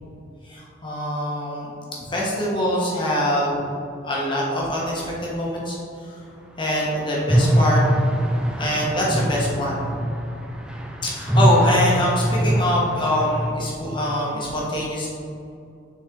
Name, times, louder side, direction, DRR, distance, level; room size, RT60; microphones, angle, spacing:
voice 1, 0.5-1.7 2.1-3.6 4.0-5.8 6.6-7.8 8.6-10.1 11.0-15.1, left 1 dB, 25° left, -4 dB, 1.2 m, -24 dB
sound 1, 7.2-13.5, equal, 5° right, 0.4 m, -22 dB
6.7 x 4.1 x 3.7 m, 2.6 s
head